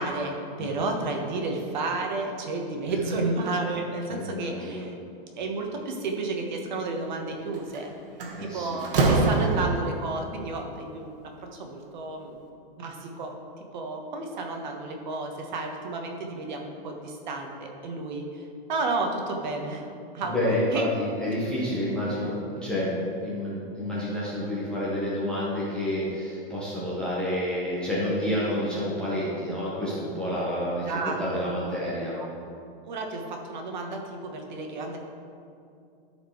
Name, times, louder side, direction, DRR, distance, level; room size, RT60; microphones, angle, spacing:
voice 1, 0.0-4.9 5.4-7.9 8.4-11.1 11.4-12.4 12.7-13.3 13.7-19.8 20.1-20.3 20.7-20.9 30.9-31.5 31.8-31.9 32.2-32.6 32.9-35.0, right 3 dB, 50° right, 2 dB, 1.2 m, -32 dB
voice 2, 4.1-4.8 8.4-8.8 20.2-32.1, left 1 dB, 5° left, -9 dB, 0.8 m, -29 dB
Slam, 7.5-7.8 8.2-10.1, right 3 dB, 70° right, 1.4 m, -24 dB
13.0 x 4.5 x 4.5 m, 2.5 s
supercardioid pair, 180°, 29 cm